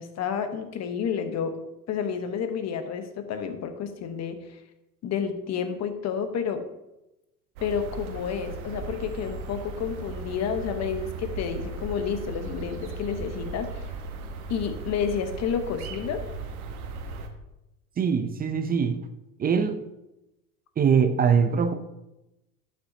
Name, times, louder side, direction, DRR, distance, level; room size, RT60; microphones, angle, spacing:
voice 1, 0.0-1.6 1.9-4.4 5.0-6.6 7.6-13.8 14.5-16.2, left 7 dB, 35° left, 8 dB, 1.1 m, -30 dB
sound 1, 7.6-17.3, right 4 dB, 70° right, 1.3 m, -37 dB
voice 2, 18.0-19.1 19.4-19.9 20.8-21.8, right 6 dB, 20° right, 9 dB, 0.5 m, -22 dB
11.0 x 6.0 x 2.8 m, 0.94 s
hypercardioid pair, 85°, 44 cm